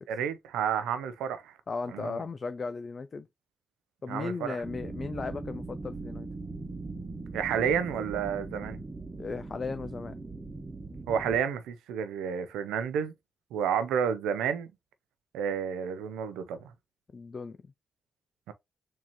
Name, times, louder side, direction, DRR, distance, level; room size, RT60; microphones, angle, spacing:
voice 1, 0.1-1.5 1.9-2.2 4.1-4.6 7.3-8.8 11.1-13.1 13.5-14.7 15.3-16.7 18.5-18.6, right 7 dB, 85° right, 0.4 m, -30 dB
voice 2, 1.7-3.3 4.0-6.3 9.2-10.1 17.1-17.6, left 4 dB, 50° left, 0.4 m, -36 dB
sound 1, 4.6-11.4, right 3 dB, 30° right, 1.1 m, -40 dB
4.4 x 2.8 x 2.9 m
hypercardioid pair, 40°, 0 cm